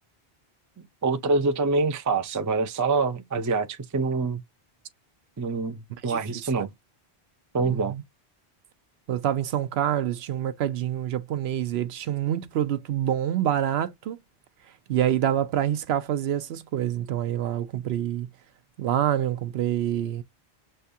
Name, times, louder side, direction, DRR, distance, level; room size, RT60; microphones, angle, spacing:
voice 1, 1.0-4.4 5.4-6.7 7.5-7.9, right 3 dB, 30° right, 0.3 m, -25 dB
voice 2, 6.0-6.5 7.6-8.0 9.1-14.2 14.9-18.3 18.8-20.2, right 11 dB, 75° right, 0.8 m, -26 dB
6.5 x 2.3 x 2.7 m
omnidirectional pair, 1.1 m